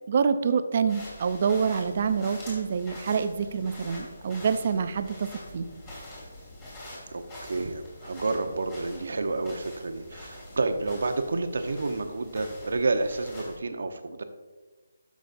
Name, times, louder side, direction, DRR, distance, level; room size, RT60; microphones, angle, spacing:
voice 1, 0.1-5.3 5.5-5.7, right 6 dB, 40° right, 10 dB, 0.6 m, -26 dB
sound 1, 0.9-13.6, left 1 dB, 20° left, 2.6 m, -45 dB
voice 2, 7.1-14.2, right 3 dB, 70° right, 7 dB, 0.9 m, -30 dB
12.0 x 6.2 x 2.6 m, 1.3 s
hypercardioid pair, 165°, 0 cm